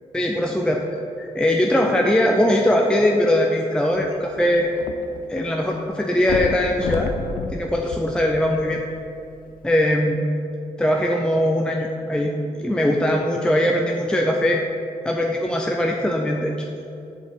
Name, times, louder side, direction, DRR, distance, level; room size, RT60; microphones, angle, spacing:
voice 1, 0.1-0.8 1.2-4.7 5.3-7.1 7.5-8.8 9.6-10.3 10.8-14.6 15.0-16.7, left 1 dB, 5° left, 0 dB, 0.6 m, -21 dB
sound 1, 4.0-5.4 5.7-5.8 6.2-8.8 9.5-9.6, left 5 dB, 80° left, 0.5 m, -30 dB
7.6 x 5.4 x 4.5 m, 2.7 s
cardioid pair, 65°, 14 cm